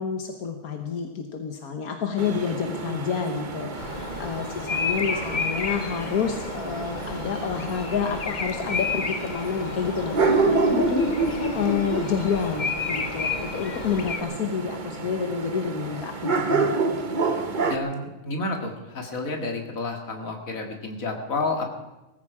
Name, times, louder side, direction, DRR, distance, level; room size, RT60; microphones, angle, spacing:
voice 1, 0.0-11.0 11.5-16.8 17.3-17.8, left 6 dB, 90° left, 5 dB, 1.7 m, -29 dB
sound 1, 2.2-17.8, right 3 dB, 35° right, 1.1 m, -29 dB
voice 2, 3.5-4.1 12.9-13.3 17.3-17.4 17.7-21.7, left 2 dB, 70° left, 3 dB, 2.4 m, -31 dB
Bird vocalization bird call bird song, 3.8-14.2, left 4 dB, 35° left, 1.0 m, -32 dB
18.5 x 15.0 x 4.9 m, 1.1 s
omnidirectional pair, 1.5 m